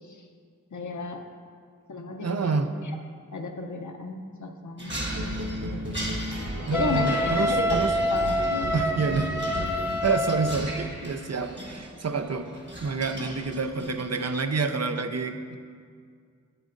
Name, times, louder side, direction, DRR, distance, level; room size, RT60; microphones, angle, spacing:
voice 1, 0.7-1.2 1.9-2.6 3.3-4.9 5.2-6.1 6.7-7.2 7.5-7.8 8.1-8.7, left 2 dB, 70° left, 4 dB, 0.7 m, -33 dB
voice 2, 2.2-2.7 6.6-7.9 8.7-9.3 10.0-12.5 12.8-15.6, right 4 dB, 55° right, 8 dB, 0.5 m, -28 dB
sound 1, 4.8-14.5, right 1 dB, 35° right, 1.3 m, -39 dB
sound 2, 5.0-10.0, equal, 75° right, 1.0 m, -34 dB
Wind instrument woodwind instrument, 6.7-10.6, left 1 dB, 10° right, 0.6 m, -27 dB
8.9 x 8.1 x 2.5 m, 2.1 s
wide cardioid pair, 45°, 31 cm